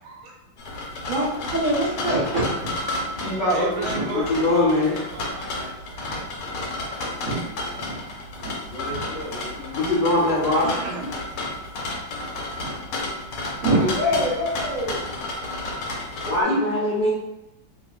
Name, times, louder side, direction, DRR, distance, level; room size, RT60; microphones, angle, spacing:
voice 1, 0.0-0.4 3.5-4.4 4.6-6.7 10.6-11.1, right 3 dB, 85° right, 0 dB, 1.4 m, -36 dB
sound 1, 0.6-16.4, left 2 dB, 90° left, 1.5 m, -32 dB
voice 2, 1.6-2.7 3.0-3.1 3.9-4.0 7.2-7.4 7.7-7.9 8.4-8.5 12.6-12.7 13.4-15.0, right 1 dB, 55° right, -9 dB, 0.9 m, -25 dB
voice 3, 3.2-4.2 4.8-4.9 8.7-9.8 13.7-14.3, equal, 55° left, -8 dB, 0.9 m, -29 dB
voice 4, 4.1-4.9 9.8-10.7 16.3-17.1, left 2 dB, 70° left, -10 dB, 0.5 m, -21 dB
3.0 x 2.6 x 2.3 m, 0.95 s
omnidirectional pair, 2.3 m